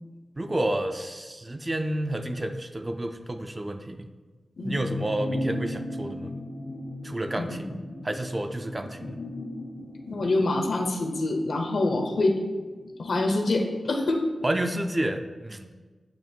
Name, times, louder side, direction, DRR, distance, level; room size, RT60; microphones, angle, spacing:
voice 1, 0.4-4.1 4.6-6.3 7.0-7.8 8.0-9.2 14.4-15.7, right 1 dB, 25° right, 6 dB, 0.4 m, -30 dB
sound 1, 4.6-14.5 14.8-14.9, left 1 dB, 45° left, 0.7 m, -38 dB
voice 2, 10.1-12.3 13.0-14.2, left 2 dB, 75° left, 3 dB, 0.8 m, -25 dB
8.5 x 3.0 x 4.4 m, 1.4 s
wide cardioid pair, 100°, 0 cm